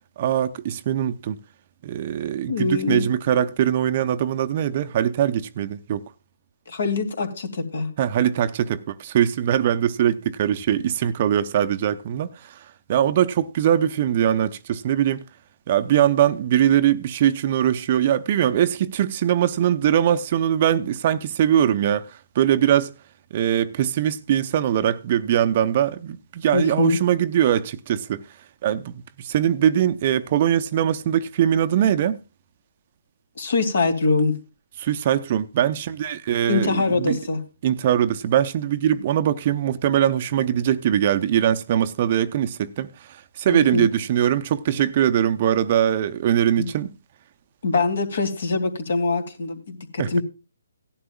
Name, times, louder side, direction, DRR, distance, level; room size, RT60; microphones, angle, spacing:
voice 1, 0.2-1.4 1.8-6.1 8.0-12.6 12.9-15.2 15.7-22.9 23.3-28.2 28.6-32.2 34.8-37.2 37.6-46.9 50.0-50.1, right 10 dB, 40° right, 0.7 m, -21 dB
voice 2, 2.5-3.1 6.7-7.9 26.5-27.0 33.4-34.4 36.5-37.4 43.5-43.9 46.6-46.7 47.6-50.2, left 3 dB, 60° left, 3.0 m, -23 dB
17.5 x 11.0 x 2.3 m
figure-of-eight pair, 145°, 0 cm